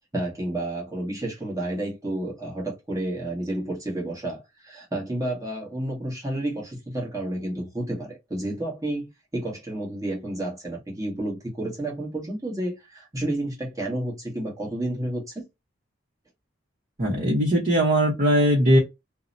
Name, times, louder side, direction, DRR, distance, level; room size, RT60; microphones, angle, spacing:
voice 1, 0.1-15.5, right 1 dB, 20° right, 1.0 m, -31 dB
voice 2, 17.0-18.8, equal, 45° right, 0.8 m, -20 dB
2.7 x 2.0 x 2.5 m
head